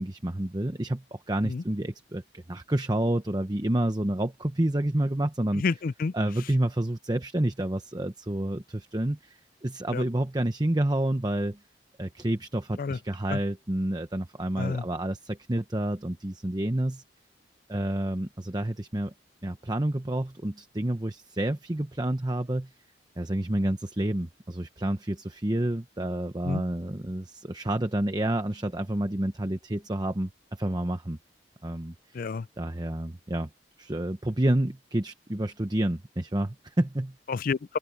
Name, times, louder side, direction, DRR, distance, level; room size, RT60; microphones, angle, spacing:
voice 1, 0.0-5.6 6.1-11.6 12.0-17.0 17.7-19.1 19.4-22.7 23.2-31.2 31.6-32.2 32.6-33.5 33.8-37.1, right 1 dB, 25° right, 0.9 m, -29 dB
voice 2, 5.6-6.1 9.9-10.0 12.8-13.0 13.3-13.4 14.6-14.8 26.4-26.6 32.1-32.5 37.3-37.8, left 4 dB, 50° left, 0.4 m, -29 dB
open air
head